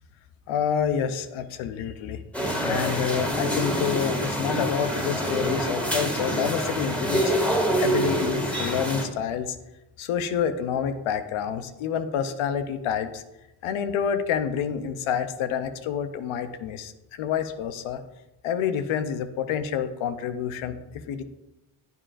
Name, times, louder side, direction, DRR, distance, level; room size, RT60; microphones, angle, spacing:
voice 1, 0.5-2.2 2.6-7.3 7.8-9.6 10.0-13.2 13.6-18.0 18.4-21.2, left 8 dB, 85° left, 10 dB, 0.7 m, -28 dB
sound 1, 2.3-9.1, right 1 dB, 5° left, 1.9 m, -26 dB
9.4 x 7.7 x 2.5 m, 0.97 s
supercardioid pair, 40°, 47 cm